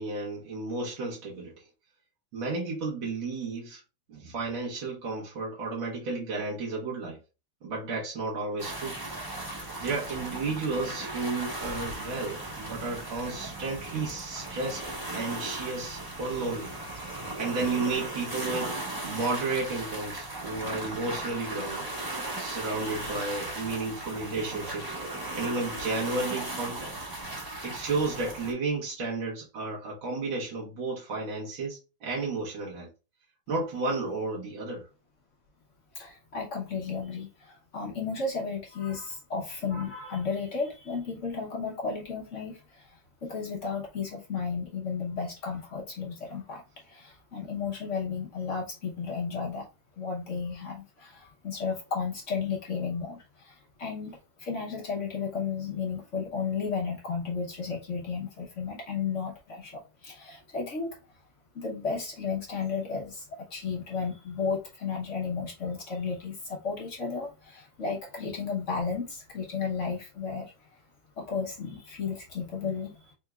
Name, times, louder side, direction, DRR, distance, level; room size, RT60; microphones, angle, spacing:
voice 1, 0.0-1.7 2.3-3.8 4.1-7.2 7.6-9.5 9.8-16.7 17.4-21.9 22.4-24.9 25.3-27.0 27.6-32.9 33.5-34.9, right 3 dB, 75° right, 2.1 m, -33 dB
sound 1, 8.6-28.5, right 2 dB, 15° right, 0.9 m, -37 dB
voice 2, 35.9-49.6 50.0-60.9 61.5-70.5 71.2-73.1, left 5 dB, 50° left, 1.0 m, -33 dB
4.6 x 3.4 x 2.3 m
omnidirectional pair, 2.2 m